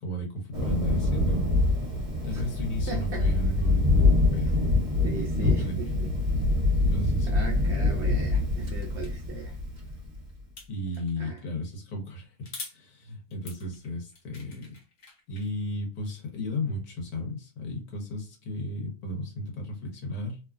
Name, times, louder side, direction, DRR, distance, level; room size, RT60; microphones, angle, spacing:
voice 1, 0.0-1.9 2.2-4.1 4.3-4.9 5.3-6.1 6.8-7.4 10.7-14.7 15.3-20.4, equal, 75° left, 1.6 m, -34 dB
Thunder, 0.5-10.2, left 2 dB, 25° right, 1.0 m, -25 dB
voice 2, 2.9-3.3 5.0-6.1 7.3-9.6 11.2-11.4, right 4 dB, 60° right, 0.8 m, -38 dB
sound 1, 9.0-9.1 10.6-11.2 12.4-12.8 13.3-15.5, left 3 dB, 55° left, 1.2 m, -44 dB
3.1 x 2.3 x 2.3 m
omnidirectional pair, 1.7 m